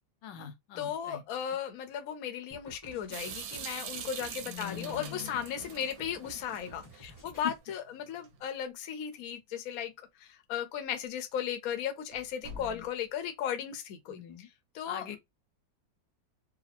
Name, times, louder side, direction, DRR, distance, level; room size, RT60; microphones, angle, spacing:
voice 1, 0.2-1.2 4.3-5.4 7.0-7.1 7.4-7.5 12.5-12.8 14.1-14.5 14.8-15.2, left 9 dB, 80° left, 1.3 m, -42 dB
voice 2, 0.8-9.9 10.2-14.2 14.7-15.1, left 9 dB, 60° left, 1.0 m, -36 dB
sound 1, 2.5-7.6, equal, 15° left, 0.7 m, -52 dB
Water tap faucet / Sink (filling or washing) / Drip, 3.1-7.2, right 8 dB, 90° right, 1.4 m, -43 dB
sound 2, 8.2-8.9 9.1-9.2 10.0-10.1 10.8-11.1 11.5-11.6 12.1-13.2, left 3 dB, 65° right, 0.9 m, -49 dB
3.9 x 2.3 x 2.8 m
omnidirectional pair, 2.0 m